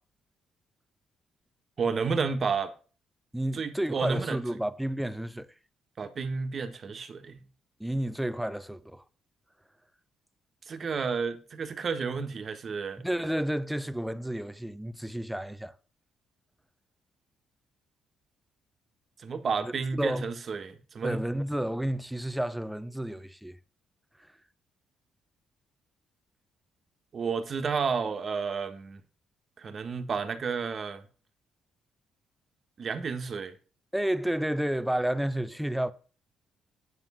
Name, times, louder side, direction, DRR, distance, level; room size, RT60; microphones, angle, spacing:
voice 1, 1.8-2.7 3.5-4.4 6.0-7.4 10.7-13.0 19.2-21.2 27.1-29.0 29.6-31.0 32.8-33.5, right 5 dB, 45° right, 1.5 m, -31 dB
voice 2, 3.3-5.5 7.8-9.0 13.0-15.7 19.6-20.3 21.0-23.6 33.9-35.9, right 1 dB, 5° right, 0.7 m, -31 dB
9.2 x 7.3 x 5.6 m
cardioid pair, 90°, 0 cm